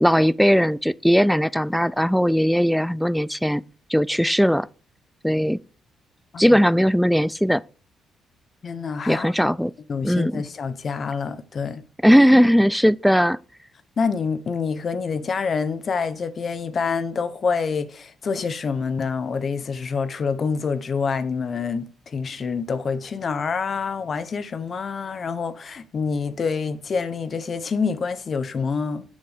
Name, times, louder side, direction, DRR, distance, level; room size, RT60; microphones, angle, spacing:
voice 1, 0.0-3.6 3.9-4.7 5.2-5.6 6.4-7.6 9.1-9.7 10.0-10.4 12.0-13.4, equal, ahead, 0.3 m, -18 dB
voice 2, 8.6-9.3 9.9-11.8 14.0-29.0, left 5 dB, 45° left, 0.9 m, -27 dB
7.3 x 6.1 x 4.9 m
cardioid pair, 90°, 0 cm